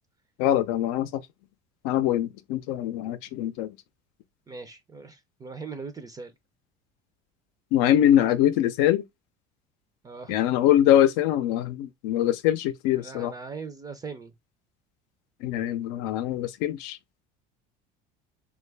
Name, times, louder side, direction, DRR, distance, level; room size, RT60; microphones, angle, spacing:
voice 1, 0.4-1.2 1.8-3.8 7.7-9.0 10.3-13.3 15.4-17.0, left 11 dB, 80° left, 0.6 m, -23 dB
voice 2, 4.5-6.3 10.0-10.3 12.9-14.3, right 4 dB, 20° right, 0.4 m, -40 dB
3.2 x 2.4 x 3.2 m
cardioid pair, 135°, 20 cm